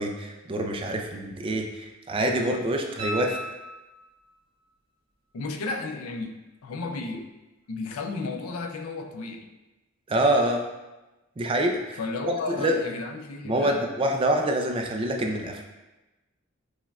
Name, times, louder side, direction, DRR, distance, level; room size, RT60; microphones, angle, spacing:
voice 1, 0.0-3.4 10.1-10.6 11.4-12.0 12.5-12.8 13.4-15.6, right 1 dB, 25° right, 2 dB, 0.3 m, -26 dB
sound 1, 3.0-4.3 7.1-7.2, equal, 45° right, 1.2 m, -36 dB
voice 2, 5.3-6.4 6.6-7.3 7.7-9.5 12.0-13.9, left 3 dB, 85° left, 5 dB, 0.4 m, -33 dB
6.1 x 2.2 x 2.3 m, 1.1 s
head